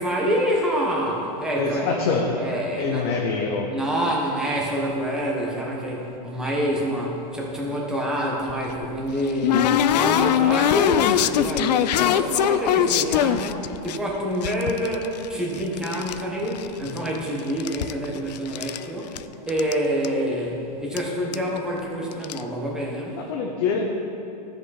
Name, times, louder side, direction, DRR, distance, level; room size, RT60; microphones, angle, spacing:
voice 1, 0.0-2.0 2.4-3.1 3.7-19.2 19.5-23.2, equal, 5° right, -3 dB, 1.2 m, -27 dB
voice 2, 1.5-2.4 2.8-3.7 23.3-24.0, left 4 dB, 45° left, 1 dB, 0.8 m, -25 dB
sound 1, 8.5-14.0 14.4-16.2 16.5-17.2 17.5-18.8 19.2-19.3 19.5-19.7 20.0-20.1 21.0-21.1 21.3-21.6 22.1-22.4, left 10 dB, 75° left, 0.4 m, -22 dB
13.5 x 5.2 x 4.2 m, 2.8 s
supercardioid pair, 155°, 21 cm